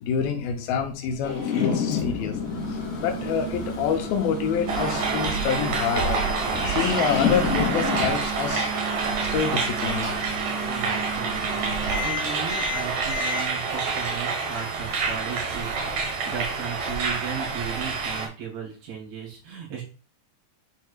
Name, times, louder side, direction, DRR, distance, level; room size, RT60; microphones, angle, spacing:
voice 1, 0.0-2.4 2.7-6.2 6.7-8.7 9.3-10.1, left 7 dB, 90° left, 4 dB, 2.7 m, -27 dB
sound 1, 1.2-8.1, left 6 dB, 65° left, 3.9 m, -30 dB
Microwave oven, 1.9-13.4, right 2 dB, 45° left, 2.6 m, -35 dB
sound 2, 4.7-18.3, right 4 dB, 60° right, 2.8 m, -27 dB
voice 2, 10.7-19.8, right 7 dB, 80° right, -5 dB, 5.3 m, -36 dB
10.5 x 4.6 x 2.4 m, 0.35 s
omnidirectional pair, 4.1 m